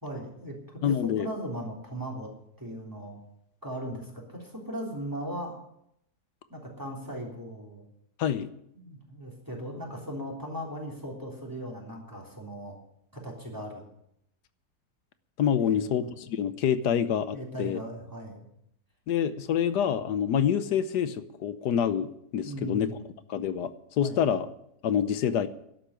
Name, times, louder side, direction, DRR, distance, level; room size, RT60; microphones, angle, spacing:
voice 1, 0.0-2.3 2.6-3.2 3.6-5.6 6.5-7.8 8.7-12.7 13.1-13.8 15.6-16.1 17.3-18.5 22.4-23.0 24.0-24.2, equal, 10° right, -2 dB, 3.4 m, -38 dB
voice 2, 0.8-1.3 8.2-8.5 15.4-17.8 19.1-22.9 23.3-24.5 24.8-25.5, left 8 dB, 80° left, 13 dB, 1.4 m, -27 dB
12.0 x 8.3 x 9.9 m, 0.76 s
omnidirectional pair, 1.8 m